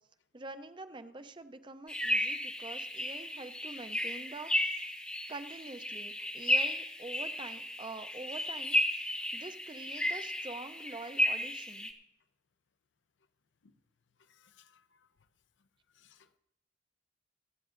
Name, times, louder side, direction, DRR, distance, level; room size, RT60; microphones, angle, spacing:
voice 1, 0.3-4.8 5.3-11.9, right 2 dB, 25° right, 0.5 m, -46 dB
sound 1, 1.9-11.9, left 1 dB, 5° left, 0.8 m, -34 dB
voice 2, 14.3-15.0 16.0-16.4, left 8 dB, 80° left, 0.6 m, -64 dB
26.5 x 9.0 x 2.5 m
head